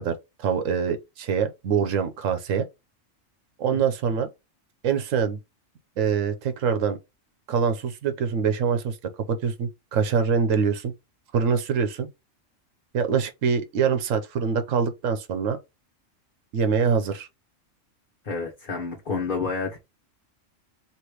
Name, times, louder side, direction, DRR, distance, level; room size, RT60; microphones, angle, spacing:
voice 1, 0.0-2.7 3.6-4.3 4.8-5.4 6.0-7.0 7.5-9.0 9.3-10.9 11.3-12.1 12.9-15.6 16.5-17.3, right 6 dB, 80° right, 1.1 m, -24 dB
voice 2, 18.2-19.8, left 4 dB, 40° left, 1.2 m, -29 dB
3.3 x 3.0 x 4.5 m
omnidirectional pair, 1.3 m